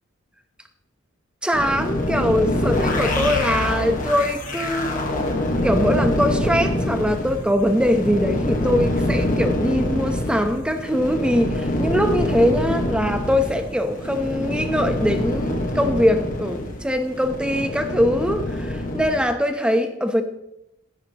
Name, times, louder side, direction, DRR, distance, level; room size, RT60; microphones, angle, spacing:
voice 1, 1.4-5.3 5.6-20.2, equal, 5° right, 6 dB, 0.9 m, -22 dB
sound 1, 1.5-19.2, left 1 dB, 45° left, 1.5 m, -25 dB
14.5 x 9.9 x 3.0 m, 0.83 s
head